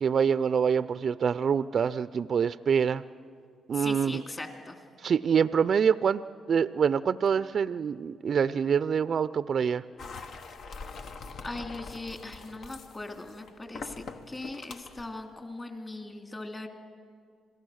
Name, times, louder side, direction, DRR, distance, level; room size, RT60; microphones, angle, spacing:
voice 1, 0.0-3.0 3.7-4.2 5.0-6.2 6.5-9.8, right 7 dB, 55° right, 15 dB, 0.4 m, -25 dB
voice 2, 3.7-4.8 10.8-10.9 11.4-16.7, left 2 dB, 25° left, 5 dB, 2.7 m, -40 dB
sound 1, 10.0-15.1, left 4 dB, 70° left, 1.3 m, -43 dB
27.0 x 17.5 x 6.4 m, 2.2 s
supercardioid pair, 65°, 0 cm